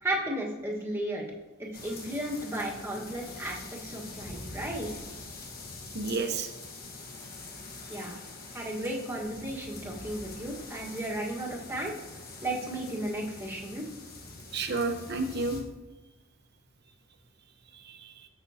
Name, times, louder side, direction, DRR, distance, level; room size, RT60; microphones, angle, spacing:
voice 1, 0.0-1.2 1.6-4.9 7.9-8.2 8.5-11.9 12.4-13.8, right 1 dB, 10° right, -4 dB, 1.6 m, -34 dB
sound 1, 1.7-15.6, left 3 dB, 45° left, 1.3 m, -44 dB
voice 2, 5.9-6.5 14.5-15.6 17.7-18.3, right 3 dB, 50° right, 5 dB, 1.0 m, -31 dB
16.5 x 6.2 x 2.9 m, 1.1 s
head